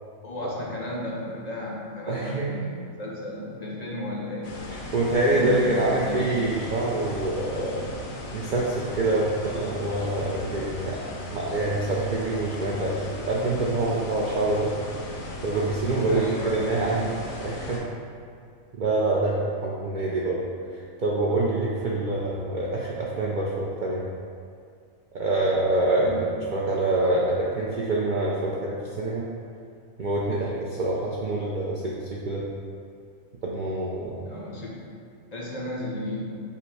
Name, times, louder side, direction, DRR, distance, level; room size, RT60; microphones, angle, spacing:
voice 1, 0.2-4.6 5.2-6.3 16.1-17.2 26.0-26.3 34.2-34.8 35.3-36.2, left 1 dB, 45° left, -5 dB, 0.6 m, -34 dB
voice 2, 2.1-2.5 4.7-7.8 8.3-11.0 11.3-14.7 15.4-17.1 17.4-17.8 18.7-20.4 20.7-24.0 25.1-29.3 30.0-32.5 33.4-34.2, right 2 dB, 90° right, -4 dB, 0.4 m, -26 dB
sound 1, 4.4-17.8, left 2 dB, 80° left, 1.1 m, -37 dB
5.5 x 2.1 x 4.6 m, 2.3 s
omnidirectional pair, 1.4 m